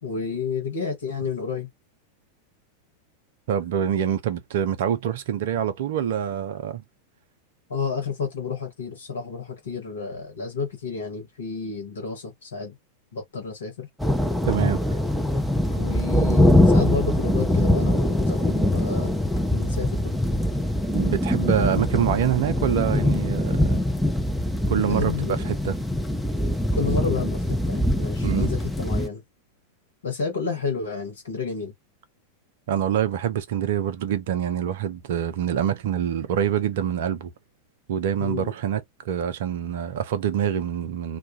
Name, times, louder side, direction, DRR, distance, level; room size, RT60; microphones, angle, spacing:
voice 1, 0.0-1.7 7.7-12.8 13.1-13.9 15.7-19.1 19.5-20.2 24.8-25.5 26.7-29.2 30.0-31.7 38.2-38.5, left 5 dB, 70° left, 1.0 m, -30 dB
voice 2, 3.5-6.8 14.4-14.8 20.9-23.8 24.7-25.1 25.6-25.8 28.2-28.5 32.7-37.3 37.9-41.2, right 9 dB, 55° right, 0.5 m, -25 dB
sound 1, 14.0-29.1, left 1 dB, ahead, 0.5 m, -23 dB
2.3 x 2.2 x 2.6 m
figure-of-eight pair, 90°, 0 cm